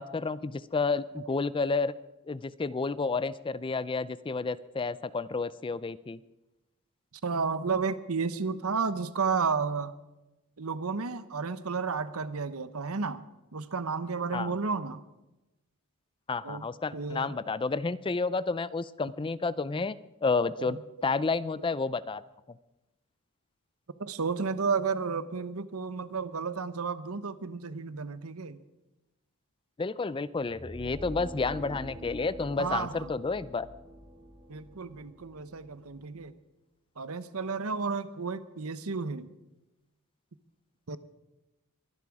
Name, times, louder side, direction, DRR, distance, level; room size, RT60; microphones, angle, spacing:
voice 1, 0.0-1.9 2.3-6.2 14.3-14.5 16.3-22.2 29.8-33.7, left 4 dB, 25° left, 17 dB, 0.4 m, -31 dB
voice 2, 7.2-9.9 10.6-13.2 13.5-15.0 16.4-16.7 16.9-17.3 20.6-20.8 24.0-28.6 32.6-33.1 34.5-36.3 37.0-39.3 40.9-41.0, right 5 dB, 70° right, 14 dB, 0.9 m, -32 dB
sound 1, 30.4-36.3, equal, 20° right, 2.7 m, -45 dB
23.0 x 11.0 x 4.9 m, 1.0 s
head